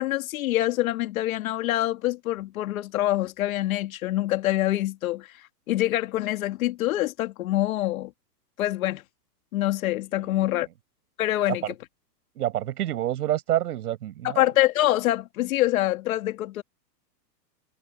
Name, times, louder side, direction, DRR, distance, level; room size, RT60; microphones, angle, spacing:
voice 1, 0.0-5.3 5.7-8.1 8.6-9.0 9.5-10.7 11.2-11.6 14.4-16.6, left 15 dB, 55° left, 2.4 m, -25 dB
voice 2, 12.4-14.5, right 13 dB, 65° right, 7.6 m, -28 dB
hypercardioid pair, 155°, 49 cm